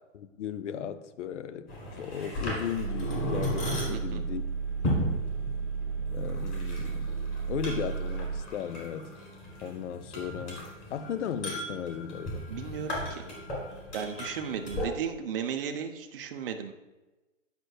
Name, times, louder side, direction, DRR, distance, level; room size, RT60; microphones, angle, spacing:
voice 1, 0.1-4.4 6.1-7.2 7.5-9.2 9.6-12.5, left 8 dB, 65° left, 0.5 m, -36 dB
sound 1, 1.7-14.9, left 1 dB, 20° left, 1.6 m, -36 dB
sound 2, 2.8-8.4, right 5 dB, 80° right, 0.8 m, -33 dB
voice 2, 3.9-4.2 12.5-13.2 13.9-16.7, right 7 dB, 45° right, 0.5 m, -35 dB
8.1 x 5.1 x 2.3 m
hypercardioid pair, 145°, 40 cm